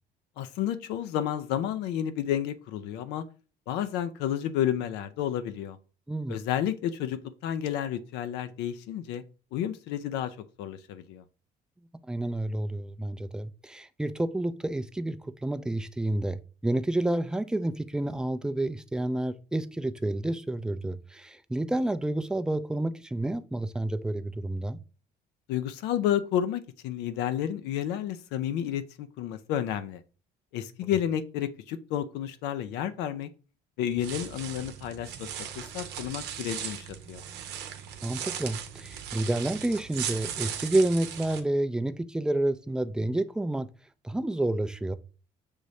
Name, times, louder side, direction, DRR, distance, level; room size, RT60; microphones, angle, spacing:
voice 1, 0.4-3.2 3.7-5.8 6.3-9.2 9.5-11.2 25.5-30.0 30.5-33.3 33.8-35.3 35.6-37.2, left 10 dB, 90° left, 0.5 m, -31 dB
voice 2, 12.1-24.8 38.0-43.7 44.0-44.9, right 1 dB, 5° right, 0.3 m, -29 dB
sound 1, 33.9-41.4, right 9 dB, 90° right, 0.8 m, -38 dB
6.3 x 2.7 x 3.1 m
cardioid pair, 110°, 17 cm